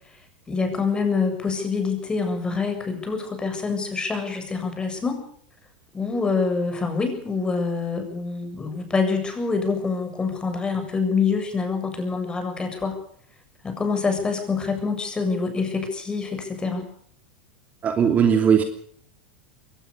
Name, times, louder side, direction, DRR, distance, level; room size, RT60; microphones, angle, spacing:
voice 1, 0.5-5.2 5.9-13.0 13.6-16.9, left 4 dB, 15° left, 6 dB, 7.4 m, -26 dB
voice 2, 17.8-18.6, right 7 dB, 30° right, 6 dB, 3.0 m, -18 dB
22.0 x 19.0 x 6.9 m, 0.62 s
hypercardioid pair, 95°, 5 cm